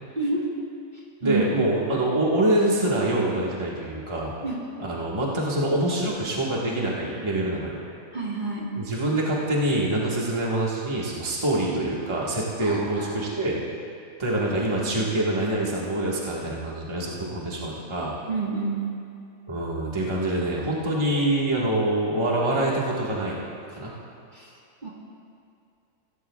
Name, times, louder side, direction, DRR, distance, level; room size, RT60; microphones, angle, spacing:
voice 1, 0.1-0.5 1.2-1.6 4.4-4.6 8.1-8.7 12.6-13.2 18.3-18.9 24.3-24.5 24.8-24.9, right 3 dB, 35° right, -5 dB, 1.7 m, -29 dB
voice 2, 1.2-4.3 4.8-7.8 8.7-13.6 14.2-18.1 19.5-23.4 23.7-23.9, right 1 dB, 20° right, -5 dB, 1.5 m, -25 dB
16.0 x 15.0 x 2.3 m, 2.5 s
omnidirectional pair, 1.4 m